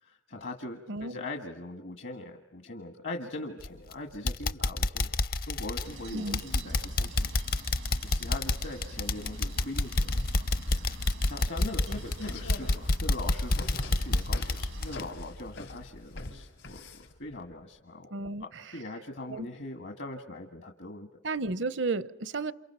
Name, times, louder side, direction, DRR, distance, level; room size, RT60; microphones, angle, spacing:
voice 1, 0.0-5.1 5.4-7.7 8.1-21.2, left 2 dB, 70° left, 1.7 m, -41 dB
voice 2, 0.9-1.2 6.1-6.4 18.1-18.4 19.3-19.5 21.2-22.5, right 3 dB, 65° right, 0.8 m, -32 dB
sound 1, 3.6-3.9 4.3-15.8 16.2-16.3 16.8-16.9, left 2 dB, 50° left, 0.8 m, -29 dB
sound 2, 5.8-15.0, right 3 dB, 85° right, 1.5 m, -48 dB
sound 3, 11.7-17.1, left 2 dB, 90° left, 4.5 m, -44 dB
28.5 x 28.5 x 5.7 m
head